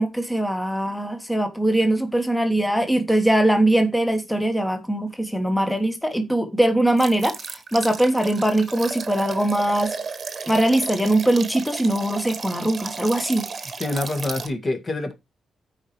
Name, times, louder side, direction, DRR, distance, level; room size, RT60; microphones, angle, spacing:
voice 1, 0.0-10.0 10.5-13.5, right 1 dB, 5° left, 1.2 m, -21 dB
sound 1, 7.0-14.5, right 5 dB, 45° right, 1.1 m, -33 dB
voice 2, 13.8-15.1, left 2 dB, 35° left, 1.9 m, -26 dB
13.5 x 4.9 x 3.1 m
cardioid pair, 80°, 0 cm